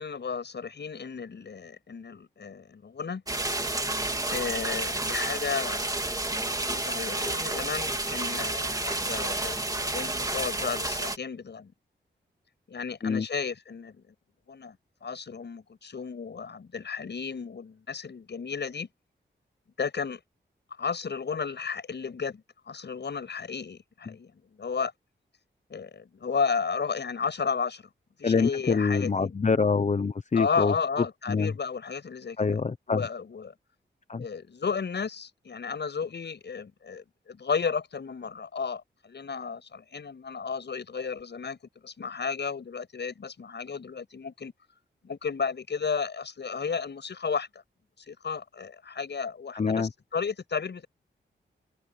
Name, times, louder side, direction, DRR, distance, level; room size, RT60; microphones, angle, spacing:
voice 1, 0.0-3.2 4.3-11.7 12.7-14.1 14.5-14.8 15.0-18.9 19.8-20.2 20.8-24.3 24.6-24.9 25.7-27.8 28.2-29.3 30.3-32.6 32.9-33.5 34.2-44.5 45.0-47.5 48.1-50.9, left 5 dB, 65° left, 7.7 m, -33 dB
sound 1, 3.3-11.2, right 2 dB, 20° right, 2.7 m, -30 dB
voice 2, 28.2-30.7 31.3-31.5 32.4-33.1 34.1-34.2 49.5-49.9, left 5 dB, 40° left, 0.9 m, -25 dB
wide cardioid pair, 85°, 19 cm